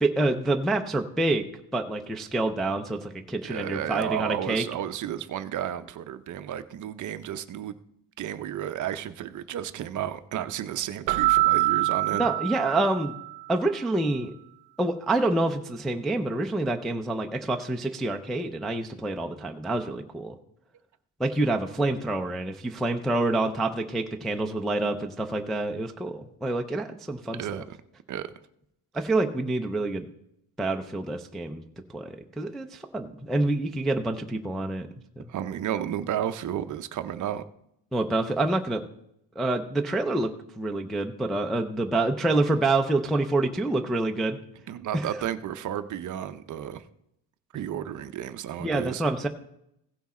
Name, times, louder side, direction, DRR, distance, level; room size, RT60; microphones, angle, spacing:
voice 1, 0.0-1.4 1.7-4.6 12.1-13.2 13.5-14.3 14.8-20.4 21.2-27.4 28.9-30.0 30.6-31.6 31.9-34.9 35.2-35.3 37.9-38.8 39.4-40.3 40.6-44.4 44.9-45.1 48.6-49.3, right 2 dB, ahead, 3 dB, 0.3 m, -27 dB
voice 2, 3.4-7.7 8.2-12.3 27.4-27.8 28.1-28.3 35.3-37.4 44.7-46.8 47.5-49.0, right 10 dB, 45° right, 11 dB, 0.6 m, -32 dB
Keyboard (musical), 11.1-13.5, right 19 dB, 90° right, 0.6 m, -25 dB
16.0 x 5.9 x 4.2 m, 0.76 s
cardioid pair, 155°, 43 cm